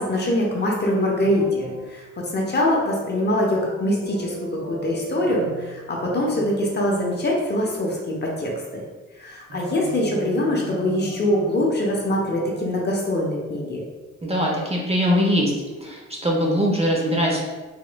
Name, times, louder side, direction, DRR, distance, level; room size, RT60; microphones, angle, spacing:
voice 1, 0.0-8.8 9.2-13.8, left 1 dB, 35° left, -1 dB, 0.8 m, -23 dB
sound 1, 1.2-1.9 2.7-5.8 6.0-7.2 9.5-11.7 12.1-12.8, right 2 dB, 55° right, 1.4 m, -38 dB
voice 2, 14.2-15.5 15.8-17.4, equal, 20° right, -2 dB, 0.7 m, -21 dB
3.6 x 3.0 x 2.2 m, 1.2 s
cardioid pair, 90°, 30 cm